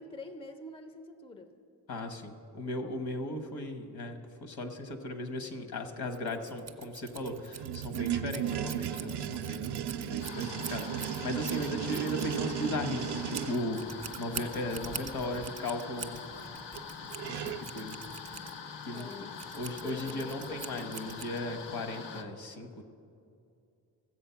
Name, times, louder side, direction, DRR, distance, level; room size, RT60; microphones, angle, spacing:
voice 1, 0.0-1.5 18.9-19.3 19.8-20.9, left 2 dB, 15° left, 8 dB, 0.6 m, -45 dB
voice 2, 1.9-16.2 17.2-18.0 18.9-19.3 19.5-22.8, left 1 dB, 65° left, 7 dB, 1.3 m, -37 dB
Scissors, 6.1-21.7, right 7 dB, 40° right, 0.7 m, -45 dB
sound 1, 7.1-13.6 16.8-16.9 17.1-17.7, right 11 dB, 75° right, 0.5 m, -35 dB
sound 2, 10.2-22.2, left 5 dB, 85° left, 0.9 m, -44 dB
14.0 x 7.7 x 5.7 m, 2.4 s
cardioid pair, 110°, 40 cm